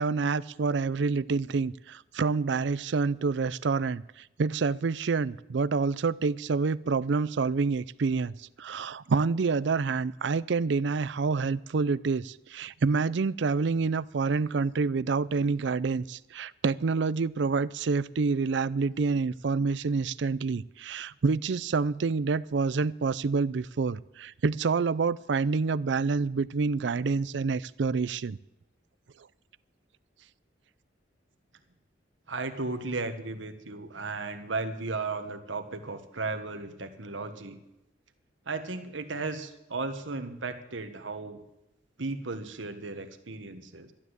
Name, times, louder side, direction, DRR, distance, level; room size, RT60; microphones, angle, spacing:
voice 1, 0.0-28.4, right 4 dB, 70° right, 18 dB, 0.5 m, -27 dB
voice 2, 32.3-37.6 38.5-41.4 42.0-43.9, right 3 dB, 90° right, 8 dB, 1.5 m, -35 dB
12.0 x 12.0 x 8.1 m, 0.90 s
head